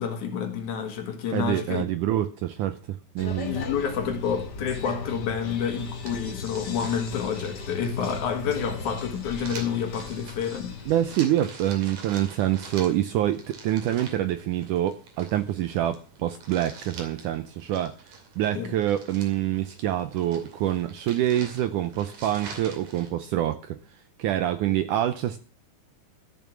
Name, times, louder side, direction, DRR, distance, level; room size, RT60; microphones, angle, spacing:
voice 1, 0.0-1.8 3.4-10.8 18.5-18.7, left 7 dB, 60° left, 2.7 m, -29 dB
voice 2, 1.3-3.6 10.9-25.4, right 12 dB, 75° right, 1.9 m, -26 dB
sound 1, 3.2-11.1, left 4 dB, 90° left, 0.9 m, -38 dB
sound 2, 5.4-23.1, right 4 dB, 60° right, 3.9 m, -46 dB
14.0 x 7.4 x 6.0 m
omnidirectional pair, 4.3 m